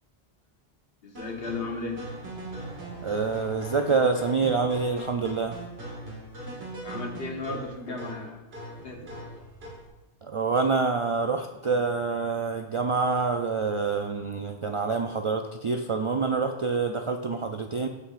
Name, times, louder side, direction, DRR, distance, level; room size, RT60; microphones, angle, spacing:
voice 1, 1.0-2.0 6.6-8.4 8.8-9.2, left 3 dB, 70° left, 2 dB, 1.4 m, -35 dB
sound 1, 1.2-9.9, right 1 dB, 85° right, 2.2 m, -40 dB
voice 2, 3.0-5.6 10.2-17.9, right 4 dB, 55° right, 5 dB, 0.3 m, -26 dB
14.0 x 5.7 x 2.5 m, 1.1 s
omnidirectional pair, 1.1 m